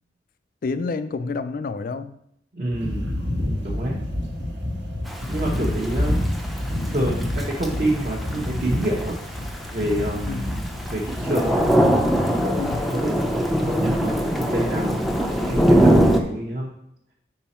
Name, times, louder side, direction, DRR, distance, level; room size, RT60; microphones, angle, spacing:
voice 1, 0.6-2.2 6.1-6.3 10.3-10.5 12.6-12.8, left 4 dB, 50° left, 0.4 m, -28 dB
voice 2, 2.5-3.1 3.6-4.0 5.3-6.2 6.9-9.2 9.6-10.5 10.9-11.6 12.2-16.7, right 1 dB, 45° right, 1.0 m, -28 dB
sound 1, 2.7-12.9, left 1 dB, 80° right, 1.5 m, -28 dB
Thunder / Rain, 5.1-16.2, equal, ahead, 0.5 m, -22 dB
5.4 x 5.2 x 4.3 m
head